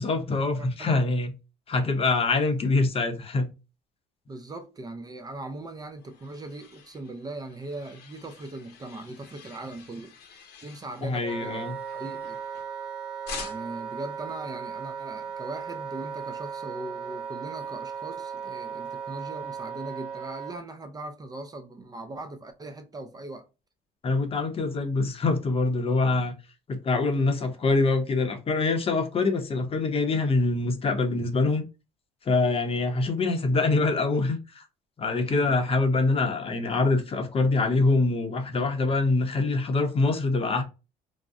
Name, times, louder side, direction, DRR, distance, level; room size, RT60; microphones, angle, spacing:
voice 1, 0.0-1.3 1.7-3.5 11.0-11.8 24.0-26.3 26.7-31.6 32.3-34.6 35.0-40.6, left 3 dB, 35° left, 0.6 m, -24 dB
voice 2, 0.6-1.0 4.3-10.1 10.6-11.7 11.9-12.4 13.4-23.5 35.2-35.5, right 2 dB, 25° right, 0.4 m, -39 dB
sound 1, 5.5-12.8 13.2-13.9, left 5 dB, 85° left, 0.8 m, -46 dB
Wind instrument woodwind instrument, 11.2-20.6, right 7 dB, 65° right, 1.1 m, -36 dB
2.5 x 2.0 x 3.5 m
cardioid pair, 110°, 17 cm